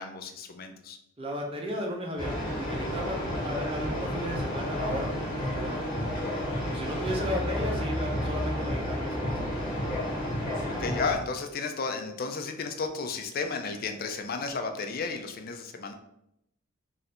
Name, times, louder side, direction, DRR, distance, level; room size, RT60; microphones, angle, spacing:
voice 1, 0.0-1.0 10.7-15.9, left 4 dB, 40° left, 6 dB, 0.4 m, -33 dB
voice 2, 1.2-6.0 6.6-9.6, equal, 25° right, 0 dB, 0.6 m, -35 dB
sound 1, 2.2-11.1, equal, 25° left, 1.0 m, -31 dB
3.2 x 2.5 x 4.2 m, 0.80 s
head